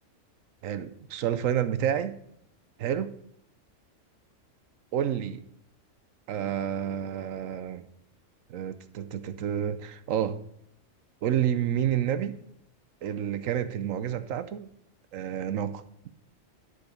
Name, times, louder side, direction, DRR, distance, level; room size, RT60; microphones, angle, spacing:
voice 1, 0.6-2.2 2.8-3.1 4.9-5.4 6.3-7.9 8.5-10.4 11.2-12.4 13.0-14.7 15.1-15.8, right 9 dB, 85° right, 13 dB, 1.1 m, -29 dB
10.5 x 5.3 x 5.2 m, 0.74 s
omnidirectional pair, 1.3 m